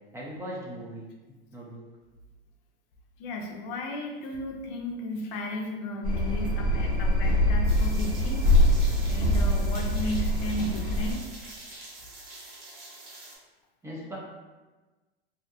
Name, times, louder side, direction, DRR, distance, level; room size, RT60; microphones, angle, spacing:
voice 1, 0.1-1.1 1.5-1.8 13.8-14.2, right 1 dB, 10° right, -5 dB, 0.5 m, -38 dB
voice 2, 3.2-8.4 8.8-11.2, left 1 dB, 65° left, 2 dB, 0.5 m, -34 dB
sound 1, 6.0-11.1, left 1 dB, 30° left, 0.9 m, -24 dB
sound 2, 7.7-13.4, right 2 dB, 50° right, 0.8 m, -45 dB
2.7 x 2.1 x 2.5 m, 1.2 s
hypercardioid pair, 105°, 30 cm